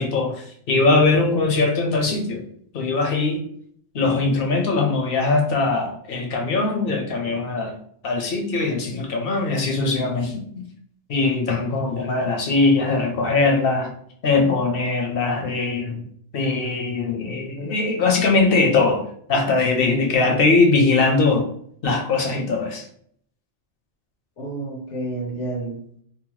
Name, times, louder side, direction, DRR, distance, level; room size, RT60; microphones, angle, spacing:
voice 1, 0.0-2.4 2.7-3.4 3.9-7.8 8.0-10.6 11.1-13.9 14.2-16.0 16.3-21.5 21.8-22.8, left 3 dB, 60° left, 2 dB, 0.7 m, -21 dB
voice 2, 24.4-26.0, right 2 dB, 90° left, -1 dB, 1.2 m, -30 dB
2.7 x 2.0 x 3.0 m, 0.63 s
omnidirectional pair, 1.2 m